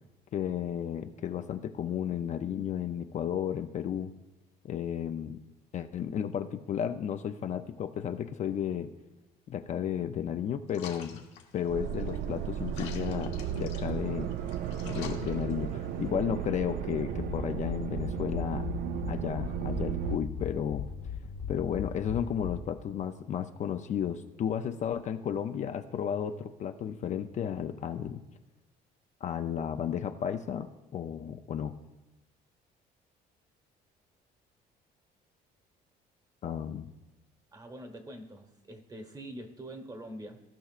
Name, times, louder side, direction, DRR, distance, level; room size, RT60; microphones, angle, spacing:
voice 1, 0.3-4.1 4.6-5.4 5.7-8.9 9.5-11.2 11.5-14.3 14.8-18.7 19.1-20.9 21.5-28.2 29.2-31.7 36.4-36.9, left 9 dB, 45° left, 7 dB, 0.5 m, -33 dB
sound 1, 10.7-16.1, left 7 dB, 90° left, 1.3 m, -49 dB
sound 2, 11.7-20.2, right 10 dB, 70° right, 0.5 m, -35 dB
sound 3, 17.1-22.9, left 6 dB, 70° left, 1.0 m, -38 dB
voice 2, 37.5-40.4, right 1 dB, 25° right, 6 dB, 1.2 m, -44 dB
16.0 x 5.6 x 2.5 m, 1.1 s
cardioid pair, 110°, 17 cm